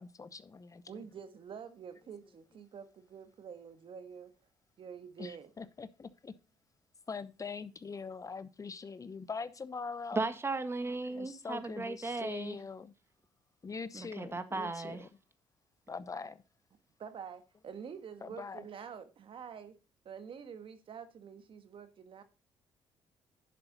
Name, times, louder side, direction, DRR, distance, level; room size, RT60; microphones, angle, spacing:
voice 1, 0.0-0.8 5.2-6.3 7.1-10.2 11.2-12.9 13.6-15.1 15.9-16.4 18.2-18.6, left 5 dB, 30° left, 0.8 m, -43 dB
voice 2, 0.9-4.3 4.8-5.5 17.0-19.8 20.0-22.2, right 7 dB, 55° right, 1.6 m, -47 dB
voice 3, 10.1-12.6 13.9-15.1, right 3 dB, 25° right, 1.6 m, -36 dB
11.0 x 7.0 x 4.1 m
cardioid pair, 75°, 11 cm